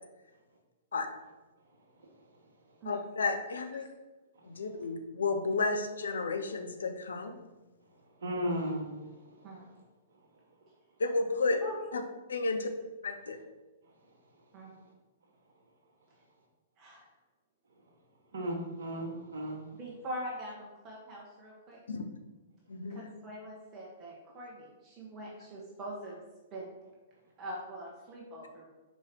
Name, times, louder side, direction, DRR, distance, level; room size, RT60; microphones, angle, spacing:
voice 1, 2.9-3.8 4.5-7.4 11.0-11.6 11.9-12.0 12.3-12.7 13.0-13.4 21.9-22.1 22.7-23.0, left 3 dB, 75° left, 7 dB, 0.8 m, -32 dB
voice 2, 8.2-9.0 18.3-19.6, equal, 65° right, 1 dB, 1.5 m, -34 dB
voice 3, 19.7-21.8 22.9-26.2 26.5-26.7 27.4-28.7, right 1 dB, 30° right, -4 dB, 1.4 m, -43 dB
5.4 x 4.9 x 4.5 m, 1.1 s
figure-of-eight pair, 110°, 0 cm